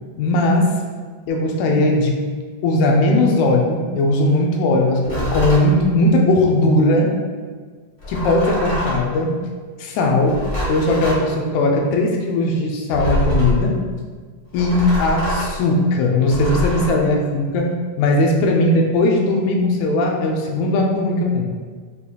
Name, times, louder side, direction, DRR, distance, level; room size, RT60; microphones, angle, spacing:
voice 1, 0.2-0.7 1.3-2.2 2.6-7.1 8.1-9.3 9.8-10.4 10.7-13.8 14.5-17.7 18.0-21.5, left 2 dB, 85° left, 0 dB, 1.6 m, -18 dB
sound 1, 5.0-5.7 8.0-9.1 10.2-11.2 12.9-13.6 14.5-15.5 16.3-16.9, left 1 dB, 40° left, 1.4 m, -24 dB
6.5 x 2.8 x 2.3 m, 1.6 s
omnidirectional pair, 3.8 m